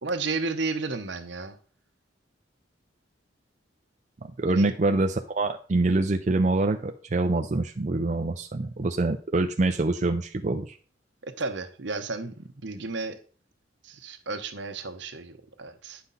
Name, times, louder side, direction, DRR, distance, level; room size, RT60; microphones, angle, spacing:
voice 1, 0.0-1.6 4.5-4.7 11.2-13.2 13.8-16.0, right 3 dB, 70° right, 1.0 m, -33 dB
voice 2, 4.4-10.8, right 2 dB, 40° right, 0.5 m, -25 dB
9.6 x 5.8 x 4.1 m
head